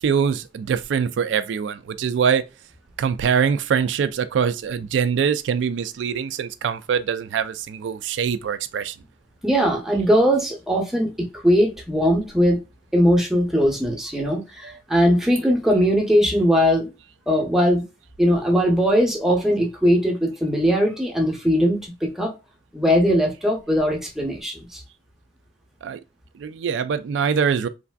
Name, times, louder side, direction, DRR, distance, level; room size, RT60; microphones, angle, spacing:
voice 1, 0.0-2.4 3.0-9.0 14.6-14.8 25.8-26.0 26.3-27.7, right 7 dB, 85° right, 0.3 m, -23 dB
voice 2, 9.4-12.6 12.9-16.9 17.3-17.8 18.2-22.3 22.7-24.8, equal, ahead, 0.7 m, -20 dB
3.2 x 2.5 x 2.2 m
head